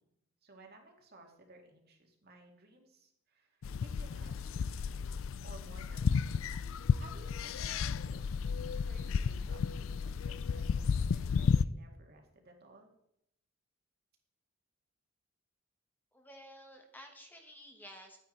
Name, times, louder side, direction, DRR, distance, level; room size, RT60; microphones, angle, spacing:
voice 1, 0.4-4.7 5.4-6.5 6.8-12.9, right 2 dB, 50° right, 2 dB, 2.2 m, -58 dB
sound 1, 3.6-11.7, left 6 dB, 70° left, 0.4 m, -33 dB
voice 2, 16.1-18.2, equal, 10° left, 3 dB, 1.1 m, -52 dB
11.0 x 9.2 x 4.5 m, 0.78 s
head